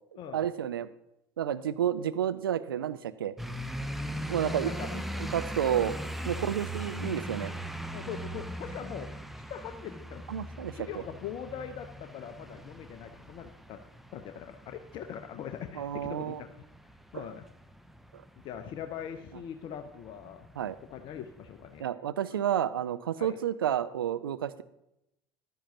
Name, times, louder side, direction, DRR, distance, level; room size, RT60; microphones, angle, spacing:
voice 1, 0.3-0.9 1.4-3.3 4.3-6.0 6.3-7.5 10.3-10.9 15.8-16.4 17.1-17.3 18.1-18.2 20.6-20.8 21.8-24.6, right 10 dB, 70° right, 13 dB, 0.5 m, -31 dB
sound 1, 3.4-21.8, right 1 dB, ahead, 0.7 m, -40 dB
voice 2, 4.4-4.9 6.3-6.6 7.9-9.1 9.5-10.2 10.7-13.8 14.1-16.3 17.1-17.5 18.4-20.5 20.9-21.8 23.2-23.4, left 9 dB, 40° left, 7 dB, 0.7 m, -41 dB
15.0 x 11.5 x 2.8 m, 0.84 s
figure-of-eight pair, 70°, 12 cm